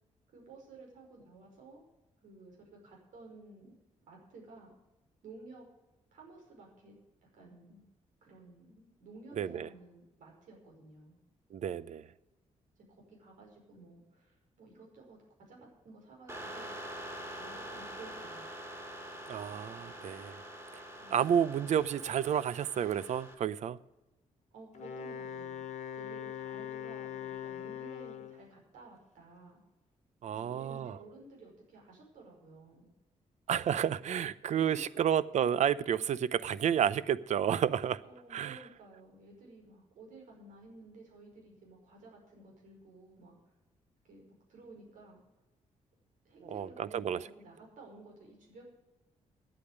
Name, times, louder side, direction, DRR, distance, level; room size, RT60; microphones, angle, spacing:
voice 1, 0.3-1.8 2.2-3.7 4.1-4.7 5.2-5.7 6.1-6.9 7.3-7.8 8.2-11.2 12.8-16.7 17.4-18.5 21.0-21.5 24.5-25.6 25.9-29.6 30.3-32.9 34.5-35.0 38.1-43.5 44.0-45.2 46.2-48.6, right 2 dB, 85° right, 0 dB, 5.5 m, -54 dB
voice 2, 9.4-9.7 11.5-12.1 19.3-20.4 20.7-20.8 21.1-23.8 30.2-31.0 33.5-38.0 38.3-38.6 46.5-47.2, right 9 dB, 65° right, 17 dB, 0.6 m, -31 dB
sound 1, 16.3-23.3, right 1 dB, 20° right, 3.3 m, -45 dB
Wind instrument woodwind instrument, 24.7-28.5, left 9 dB, 65° left, 1.3 m, -41 dB
9.9 x 8.6 x 9.5 m, 1.0 s
cardioid pair, 90°, 13 cm